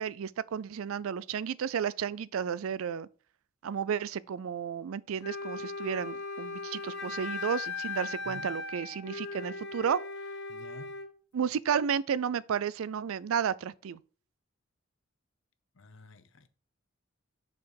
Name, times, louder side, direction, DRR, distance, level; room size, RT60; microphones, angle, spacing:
voice 1, 0.0-3.1 3.6-10.0 11.3-14.0, right 7 dB, 85° right, 0.4 m, -32 dB
Wind instrument woodwind instrument, 5.2-11.1, left 4 dB, 50° left, 1.0 m, -38 dB
voice 2, 10.5-11.0 15.7-16.5, left 2 dB, 70° left, 0.8 m, -50 dB
6.9 x 4.3 x 4.7 m
head